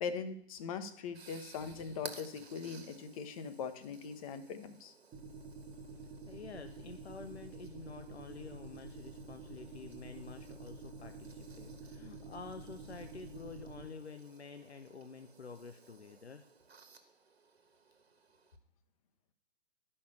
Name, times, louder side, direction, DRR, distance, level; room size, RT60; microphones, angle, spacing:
voice 1, 0.0-4.9, left 6 dB, 35° left, 10 dB, 1.0 m, -41 dB
sound 1, 0.6-18.6, right 5 dB, 70° right, 1.5 m, -57 dB
sound 2, 5.1-13.8, right 4 dB, 15° right, 1.3 m, -49 dB
voice 2, 6.3-16.4, left 4 dB, 80° left, 7 dB, 0.9 m, -49 dB
11.5 x 5.5 x 6.9 m, 0.69 s
figure-of-eight pair, 125°, 32 cm